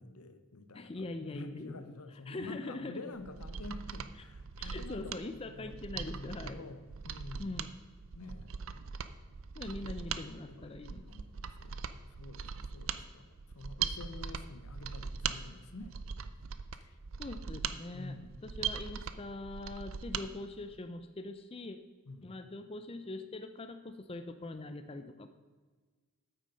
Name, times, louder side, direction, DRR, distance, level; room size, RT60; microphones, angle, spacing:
voice 1, 0.0-7.5 8.1-8.5 9.8-9.9 10.5-16.0 16.7-17.0 17.8-18.4 18.6-18.8 22.1-22.4, left 2 dB, 80° left, 10 dB, 0.9 m, -48 dB
voice 2, 0.7-1.9 2.3-3.0 4.6-6.6 7.4-7.7 9.6-11.1 17.2-21.8 22.2-25.3, left 2 dB, 25° left, 8 dB, 0.4 m, -42 dB
Mechanisms, 3.2-20.3 20.6-20.7, right 7 dB, 60° right, 0.5 m, -40 dB
9.0 x 8.3 x 5.5 m, 1.4 s
head